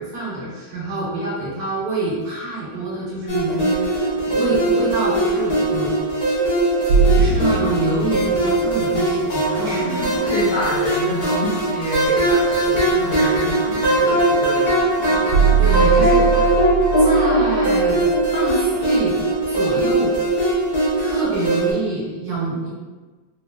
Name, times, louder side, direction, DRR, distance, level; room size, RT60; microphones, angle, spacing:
voice 1, 0.0-6.0 7.1-10.0 15.6-16.3 17.0-18.1 18.3-19.2 19.5-20.4 21.0-22.7, right 2 dB, 65° right, -5 dB, 1.0 m, -26 dB
sound 1, 3.3-21.7, right 1 dB, 45° left, 0.5 m, -20 dB
sound 2, 6.9-10.7 14.3-14.4 15.3-19.2, right 6 dB, 85° right, 1.4 m, -22 dB
voice 2, 9.6-15.2, left 2 dB, 75° left, -9 dB, 1.4 m, -28 dB
3.7 x 2.5 x 2.3 m, 1.3 s
omnidirectional pair, 2.1 m